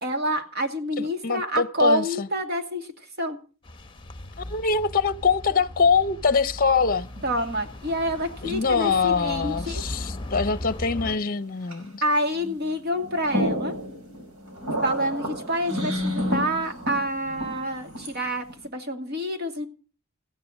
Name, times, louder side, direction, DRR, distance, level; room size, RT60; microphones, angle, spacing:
voice 1, 0.0-2.9 3.2-3.4 7.2-9.8 12.0-13.7 14.8-19.7, equal, 50° right, 2.4 m, -27 dB
voice 2, 1.0-2.3 4.4-7.1 8.4-12.0, left 5 dB, 40° left, 0.8 m, -24 dB
sound 1, 3.6-11.2, left 1 dB, 20° left, 1.0 m, -37 dB
sound 2, 6.8-7.6 8.5-8.6 10.4-11.4 11.7-11.9 12.4-12.7 13.0-18.6, equal, 75° right, 5.1 m, -31 dB
15.5 x 10.5 x 6.4 m
head